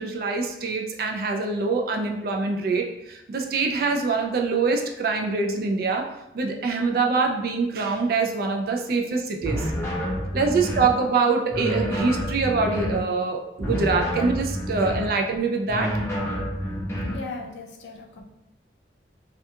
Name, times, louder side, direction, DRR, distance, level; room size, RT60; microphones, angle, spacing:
voice 1, 0.0-6.0 6.3-9.7 10.3-15.9, right 4 dB, 55° right, 2 dB, 0.3 m, -24 dB
sound 1, 9.4-11.0 11.5-13.1 13.6-15.2 15.7-17.3, equal, 15° left, 0.5 m, -28 dB
voice 2, 17.1-18.3, left 3 dB, 75° left, 0 dB, 0.4 m, -38 dB
2.3 x 2.3 x 2.7 m, 0.89 s
head